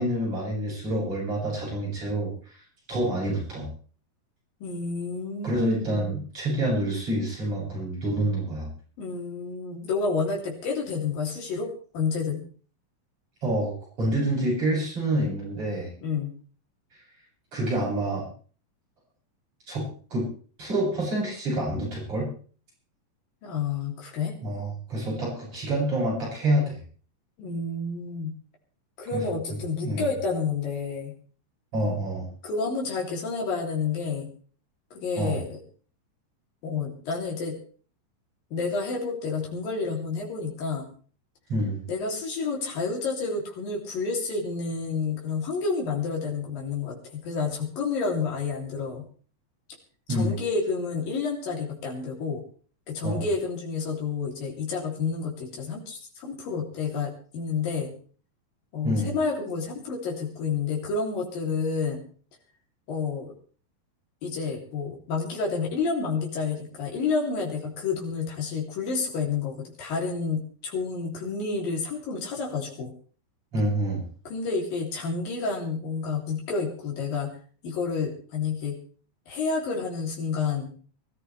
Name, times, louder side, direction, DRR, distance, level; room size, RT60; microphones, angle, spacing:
voice 1, 0.0-2.6 2.9-3.7 5.4-8.7 13.4-15.9 17.5-18.3 19.7-19.9 20.1-20.3 20.6-22.3 24.4-26.8 29.1-29.2 29.8-30.1 31.7-32.3 35.2-35.4 41.5-41.8 50.1-50.3 53.0-53.2 58.8-59.1 73.5-74.0, right 1 dB, 40° right, -5 dB, 9.0 m, -27 dB
voice 2, 4.6-6.1 9.0-12.4 16.0-16.3 23.4-24.4 27.4-28.3 29.0-31.1 32.4-34.3 34.9-35.6 36.6-37.6 38.5-40.9 41.9-49.1 50.1-52.4 52.9-57.9 58.7-62.0 62.9-63.3 64.2-72.9 74.3-77.3 77.6-78.8 79.3-80.7, left 4 dB, 90° left, -1 dB, 4.9 m, -29 dB
24.0 x 14.0 x 3.3 m, 0.42 s
omnidirectional pair, 3.9 m